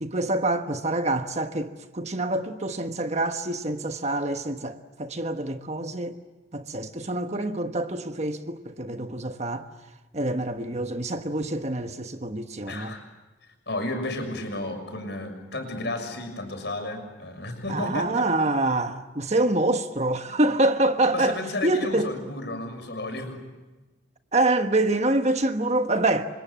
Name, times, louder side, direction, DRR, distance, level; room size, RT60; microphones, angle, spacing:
voice 1, 0.0-6.2 6.5-9.6 10.1-13.0 17.7-22.1 24.3-26.3, right 2 dB, 35° right, 1.3 m, -26 dB
voice 2, 12.7-13.0 13.7-18.3 21.1-23.4, left 2 dB, 60° left, 6.5 m, -32 dB
29.5 x 25.5 x 7.4 m
head